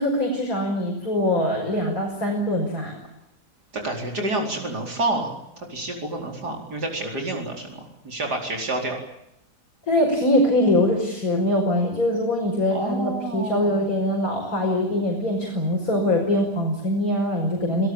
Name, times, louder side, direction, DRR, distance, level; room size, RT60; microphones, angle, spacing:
voice 1, 0.0-3.0 9.9-17.9, left 1 dB, 60° left, -1 dB, 6.6 m, -23 dB
voice 2, 3.7-9.0 12.7-13.8, right 2 dB, 90° right, 2 dB, 5.1 m, -29 dB
29.5 x 17.5 x 8.8 m, 0.84 s
omnidirectional pair, 1.7 m